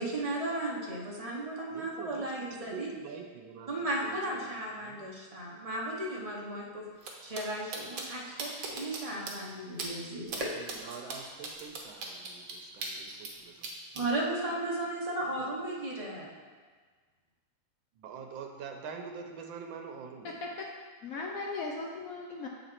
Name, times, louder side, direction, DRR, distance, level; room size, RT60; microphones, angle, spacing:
voice 1, 0.0-2.9 3.7-6.9 7.2-10.3 13.9-16.3, right 1 dB, 40° right, -4 dB, 0.5 m, -35 dB
voice 2, 1.7-5.1 10.5-13.8 15.4-15.5 17.9-20.4, right 6 dB, 85° right, 3 dB, 1.4 m, -45 dB
sound 1, 7.0-7.1 7.3-7.4 7.7-8.0 8.4-9.0 9.3-9.4 9.8-9.9 10.3-10.4 10.7-13.3 13.6-14.0, right 4 dB, 70° right, 1.6 m, -38 dB
voice 3, 20.2-20.7 21.0-22.5, left 3 dB, 75° left, 0 dB, 0.8 m, -37 dB
7.5 x 4.0 x 4.4 m, 1.5 s
omnidirectional pair, 2.1 m